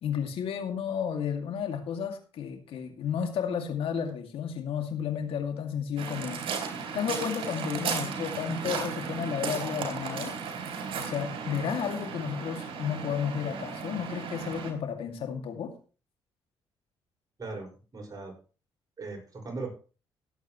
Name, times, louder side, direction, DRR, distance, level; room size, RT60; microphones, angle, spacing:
voice 1, 0.0-6.4 6.9-10.4 10.9-15.7, left 7 dB, 70° left, 5 dB, 2.3 m, -32 dB
Waves surf, 6.0-14.7, right 6 dB, 70° right, 3.5 m, -35 dB
voice 2, 17.4-18.4 19.0-19.7, right 3 dB, 40° right, 2 dB, 5.3 m, -38 dB
18.5 x 8.3 x 3.1 m, 0.36 s
supercardioid pair, 60°, 10 cm